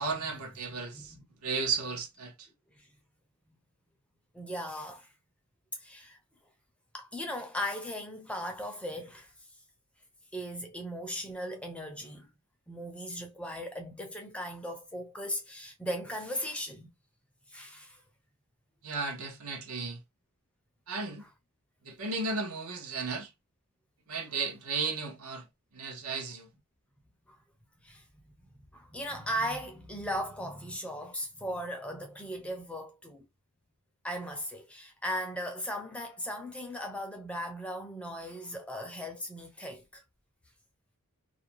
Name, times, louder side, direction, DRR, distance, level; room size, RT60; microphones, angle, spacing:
voice 1, 0.0-1.1 1.4-2.5 18.8-20.0 20.9-21.2 21.8-23.3 24.1-25.4 25.7-26.5, right 4 dB, 75° right, 0.8 m, -34 dB
voice 2, 0.7-1.2 4.3-5.1 5.8-6.2 6.9-9.3 10.3-12.3 12.7-16.9 17.5-18.0 21.2-21.3 27.3-27.4 27.8-28.0 28.7-33.2 34.0-40.0, equal, 5° left, 0.5 m, -38 dB
2.5 x 2.1 x 2.8 m
head